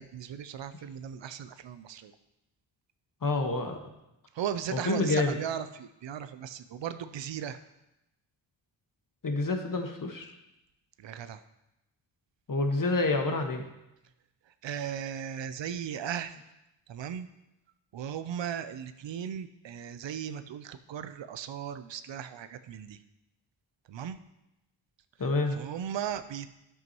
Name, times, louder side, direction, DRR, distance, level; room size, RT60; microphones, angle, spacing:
voice 1, 0.0-2.1 4.4-7.6 11.0-11.4 14.6-16.3 16.9-17.3 17.9-23.0 23.9-24.2 25.5-26.5, right 9 dB, 65° right, 12 dB, 0.7 m, -37 dB
voice 2, 3.2-3.8 4.7-5.4 9.2-10.3 12.5-13.7 25.2-25.6, left 2 dB, 45° left, 4 dB, 1.6 m, -28 dB
11.0 x 7.9 x 3.1 m, 0.90 s
supercardioid pair, 45°, 47 cm